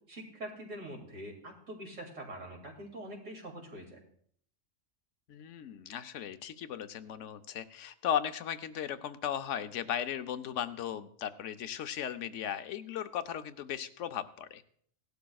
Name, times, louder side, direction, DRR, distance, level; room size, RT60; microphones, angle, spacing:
voice 1, 0.1-4.0, right 1 dB, 80° right, 0 dB, 2.8 m, -44 dB
voice 2, 5.3-14.6, left 9 dB, 75° left, 10 dB, 1.0 m, -36 dB
17.5 x 11.5 x 2.3 m, 0.62 s
omnidirectional pair, 1.3 m